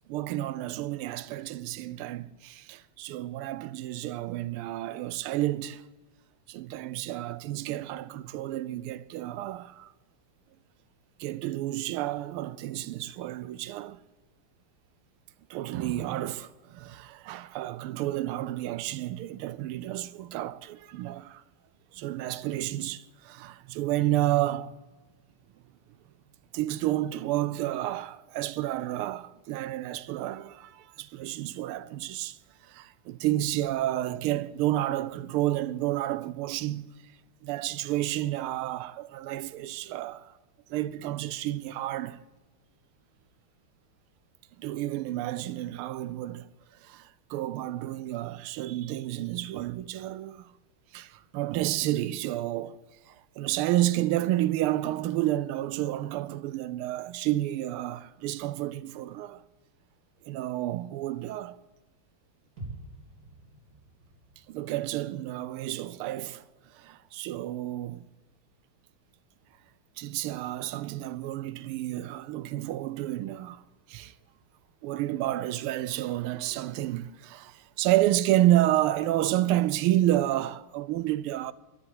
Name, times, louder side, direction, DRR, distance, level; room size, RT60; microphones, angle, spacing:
voice 1, 0.1-5.8 6.5-9.9 11.2-14.0 15.5-21.4 21.9-24.7 26.5-32.4 32.6-36.9 37.4-40.3 40.7-42.2 44.6-46.4 46.8-50.5 50.9-52.8 53.1-59.4 60.3-61.6 64.5-66.4 66.7-68.0 70.0-73.6 73.9-74.1 74.8-81.5, right 14 dB, 85° right, 1.5 m, -30 dB
sound 1, 62.6-66.5 66.8-66.9, right 2 dB, 45° right, 4.5 m, -48 dB
12.5 x 10.5 x 7.7 m
omnidirectional pair, 2.4 m